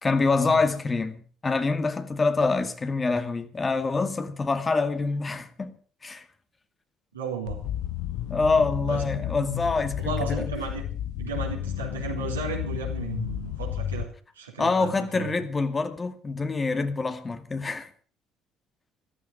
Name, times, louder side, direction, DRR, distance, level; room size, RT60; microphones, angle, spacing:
voice 1, 0.0-5.7 6.0-6.3 8.3-10.5 14.6-17.9, left 3 dB, 30° left, 2.1 m, -26 dB
voice 2, 7.1-7.6 8.9-9.3 10.0-10.8 11.2-14.1 14.3-15.4, right 5 dB, 85° right, 3.9 m, -34 dB
sound 1, 7.5-14.0, left 12 dB, 65° left, 0.9 m, -32 dB
14.5 x 13.5 x 6.2 m
figure-of-eight pair, 50°, 0 cm